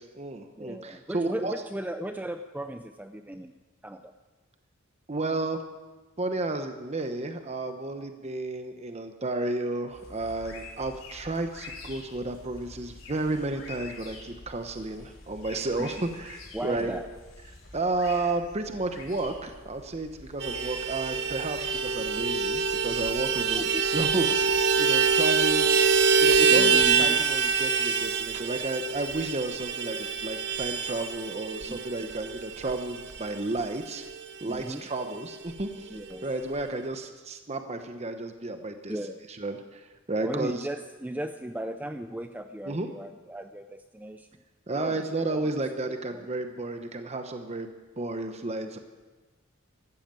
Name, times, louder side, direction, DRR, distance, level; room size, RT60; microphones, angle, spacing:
voice 1, 0.0-1.5 5.1-5.6 6.2-16.9 17.7-25.8 26.2-34.0 34.4-35.9 36.2-39.0 39.4-40.7 42.7-42.9 44.7-48.8, right 2 dB, 30° right, 7 dB, 1.0 m, -32 dB
voice 2, 0.6-3.5 3.8-4.1 15.8-16.1 16.5-17.1 23.5-23.8 26.5-27.2 31.7-32.1 34.4-34.9 35.9-36.3 38.9-39.2 40.2-44.3 44.7-45.5, right 1 dB, 10° right, 7 dB, 0.5 m, -36 dB
sound 1, 9.9-29.3, left 2 dB, 75° left, 4.7 m, -48 dB
Vehicle horn car horn honking, 20.4-34.3 34.6-34.7 35.0-35.2 35.4-36.2, right 5 dB, 55° right, 0.7 m, -25 dB
14.5 x 13.0 x 7.6 m, 1.2 s
head